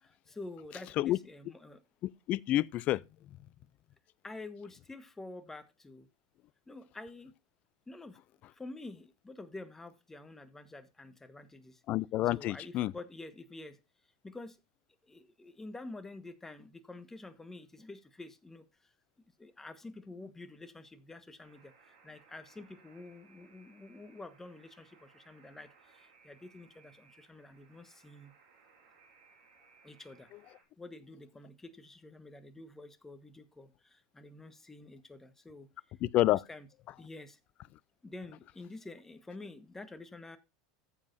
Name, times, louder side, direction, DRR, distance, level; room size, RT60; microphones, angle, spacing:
voice 1, 0.0-1.8 4.2-6.1 6.7-7.3 7.9-8.2 8.6-11.8 12.2-13.8 14.2-14.6 15.1-18.6 19.4-28.3 29.8-30.3 30.8-35.7 36.2-36.7 37.0-37.4 38.0-40.4, left 2 dB, 10° left, 1.2 m, -48 dB
voice 2, 2.3-3.0 11.9-12.9 36.0-36.4, left 15 dB, 50° left, 0.4 m, -28 dB
Alarm, 21.4-30.6, right 5 dB, 75° right, 4.2 m, -64 dB
14.0 x 7.5 x 2.6 m
hypercardioid pair, 95°, 3 cm